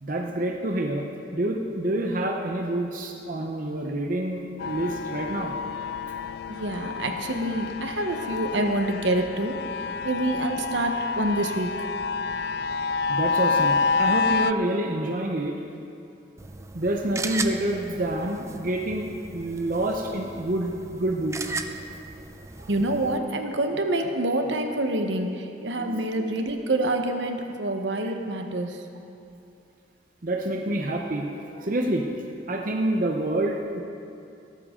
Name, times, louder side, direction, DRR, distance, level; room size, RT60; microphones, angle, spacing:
voice 1, 0.0-5.5 13.1-15.6 16.7-21.6 22.6-22.7 25.8-26.3 30.2-32.1 32.5-33.8, right 1 dB, 45° right, 1 dB, 0.8 m, -28 dB
sound 1, 4.6-14.5, left 4 dB, 60° left, 0.3 m, -28 dB
voice 2, 6.5-9.6 10.0-11.9 22.7-28.8, right 1 dB, 75° right, 4 dB, 1.2 m, -27 dB
sound 2, 16.4-23.2, right 3 dB, 15° right, 0.5 m, -37 dB
17.5 x 13.0 x 3.8 m, 2.7 s
head